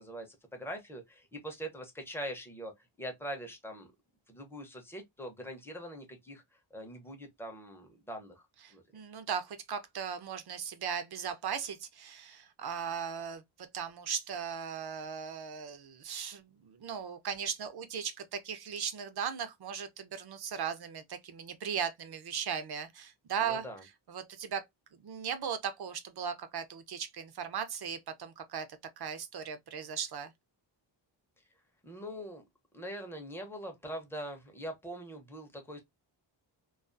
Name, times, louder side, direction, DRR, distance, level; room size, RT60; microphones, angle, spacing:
voice 1, 0.0-2.7 3.0-3.9 4.3-6.4 6.7-8.5 8.7-8.8 23.4-23.8 31.8-32.4 32.7-35.8, equal, 5° left, 0.6 m, -42 dB
voice 2, 8.6-13.4 13.7-23.6 24.1-24.6 25.0-28.7 29.0-30.3, right 7 dB, 55° right, 0.6 m, -37 dB
2.3 x 2.3 x 2.4 m
wide cardioid pair, 115°, 46 cm